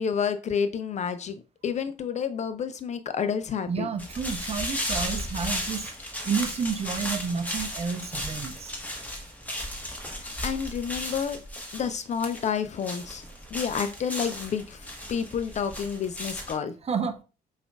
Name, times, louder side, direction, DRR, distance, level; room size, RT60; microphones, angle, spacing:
voice 1, 0.0-3.9 10.1-11.4 11.7-13.2 13.5-16.7, left 7 dB, 35° left, 0.4 m, -30 dB
voice 2, 3.7-8.8 16.8-17.2, right 6 dB, 30° right, 0.5 m, -30 dB
sound 1, 4.0-16.6, equal, 5° left, 1.1 m, -35 dB
5.0 x 2.4 x 2.2 m
hypercardioid pair, 50°, 21 cm